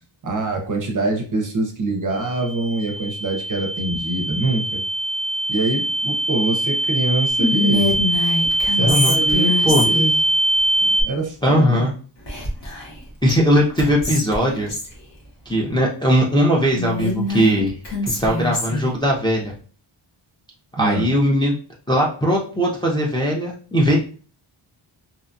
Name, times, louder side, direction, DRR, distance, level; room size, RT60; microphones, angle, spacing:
voice 1, 0.2-4.8 5.5-8.0 8.7-10.1 10.8-11.9 20.8-21.1, right 2 dB, 40° right, 2 dB, 0.6 m, -25 dB
sound 1, 2.1-11.0, right 1 dB, 85° left, 1.1 m, -22 dB
Whispering, 7.4-10.2 12.3-13.0 13.3-13.4 13.8-14.9 16.7-18.9, left 2 dB, 60° left, 1.0 m, -24 dB
voice 2, 8.8-9.2 9.6-9.8 11.4-11.9 13.2-14.7 15.5-17.7 18.0-19.5 20.8-21.5 21.9-24.0, equal, 10° left, -3 dB, 0.4 m, -19 dB
2.7 x 2.2 x 2.5 m, 0.39 s
wide cardioid pair, 145°, 48 cm